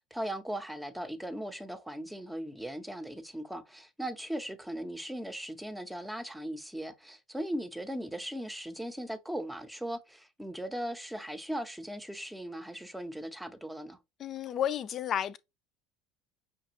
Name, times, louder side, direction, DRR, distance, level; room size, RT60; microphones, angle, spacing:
voice 1, 0.1-14.0, right 1 dB, 5° right, 0.7 m, -38 dB
voice 2, 14.2-15.4, left 10 dB, 45° left, 0.4 m, -32 dB
5.8 x 2.3 x 2.9 m
hypercardioid pair, 80°, 0 cm